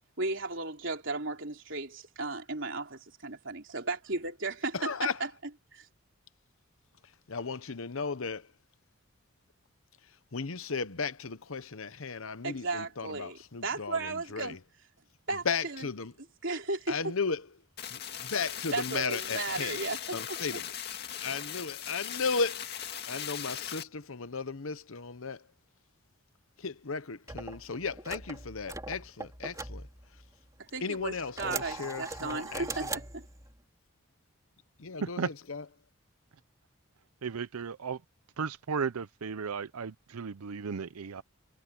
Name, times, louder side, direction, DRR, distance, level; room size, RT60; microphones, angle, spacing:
voice 1, 0.2-5.1 5.7-5.9 12.4-14.6 15.3-15.8 16.4-16.9 18.7-20.2 30.6-33.3, right 3 dB, 60° right, 3.8 m, -35 dB
voice 2, 4.7-5.2 7.0-8.5 10.0-14.6 15.4-16.1 16.9-17.5 17.9-19.8 20.1-20.7 21.2-22.7 23.1-25.5 26.6-29.9 30.8-33.0 34.8-35.6, left 5 dB, 70° left, 1.0 m, -35 dB
sound 1, 17.8-23.8, left 9 dB, 45° left, 2.3 m, -39 dB
sound 2, 27.3-30.5 31.0-33.6, right 3 dB, 15° right, 3.8 m, -41 dB
voice 3, 37.2-38.0 38.4-41.2, right 5 dB, 90° right, 0.6 m, -35 dB
head